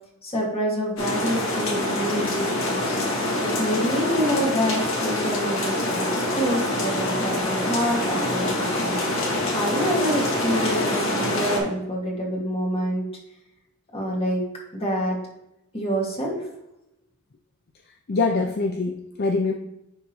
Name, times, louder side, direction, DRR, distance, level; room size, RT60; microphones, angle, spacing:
voice 1, 0.2-3.0 3.4-13.0 13.9-14.4 14.7-15.2 15.7-16.4, equal, 30° left, -3 dB, 2.0 m, -27 dB
sound 1, 1.0-11.6, left 1 dB, 65° left, 1.6 m, -25 dB
voice 2, 18.1-19.5, left 3 dB, 50° left, 3 dB, 0.5 m, -24 dB
10.5 x 3.6 x 3.0 m, 0.87 s
head